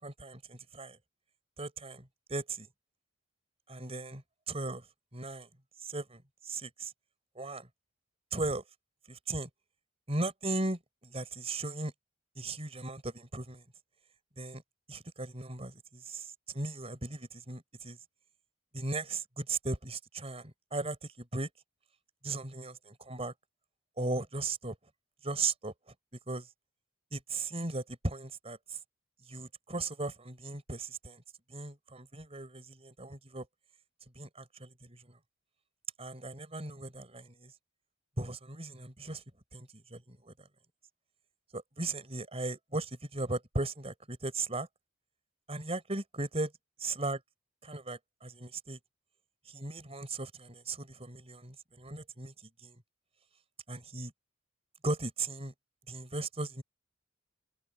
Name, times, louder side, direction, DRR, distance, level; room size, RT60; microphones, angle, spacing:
voice 1, 0.0-1.0 1.6-2.7 3.7-4.8 5.1-5.5 5.8-6.9 7.3-7.7 8.3-8.6 9.1-9.5 10.1-11.9 12.4-13.6 14.4-14.6 14.9-18.0 18.7-21.5 22.2-23.3 24.0-24.8 25.2-25.7 26.3-26.5 27.1-28.8 29.3-31.2 31.5-33.5 34.1-35.2 36.0-37.5 38.2-39.2 39.5-40.3 41.5-44.7 45.5-46.5 46.8-47.2 47.6-48.8 49.5-52.3 52.6-52.8 53.7-54.1 54.8-55.5 55.9-56.6, right 2 dB, 30° right, 4.5 m, -37 dB
head